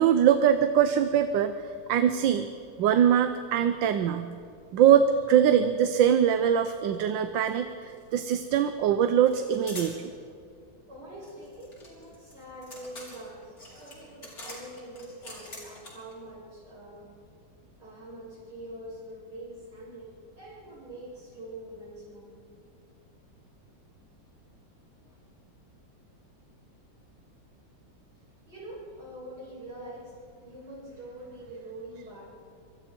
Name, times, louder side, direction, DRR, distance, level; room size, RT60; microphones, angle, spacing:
voice 1, 0.0-2.5 2.8-4.3 4.7-10.1, right 9 dB, 85° right, 9 dB, 1.5 m, -23 dB
sound 1, 7.4-7.6 7.8-8.6 9.3-10.0 11.2-16.1, left 2 dB, 50° left, 4.5 m, -45 dB
voice 2, 10.9-17.1 17.8-20.1 20.4-22.4 25.0-25.2 28.5-30.1 30.4-32.3, right 1 dB, 60° right, -6 dB, 8.0 m, -44 dB
26.0 x 23.5 x 4.5 m, 2.3 s
omnidirectional pair, 2.0 m